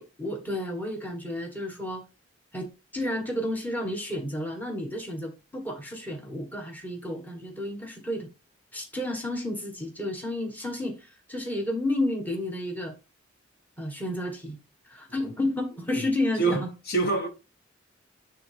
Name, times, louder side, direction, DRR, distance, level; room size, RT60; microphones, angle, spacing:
voice 1, 0.0-2.0 2.5-8.3 8.7-12.9 13.8-14.6 14.8-16.7, left 1 dB, 10° left, 1.4 m, -31 dB
voice 2, 16.4-17.3, right 4 dB, 50° left, 1.4 m, -27 dB
9.5 x 3.8 x 3.4 m
head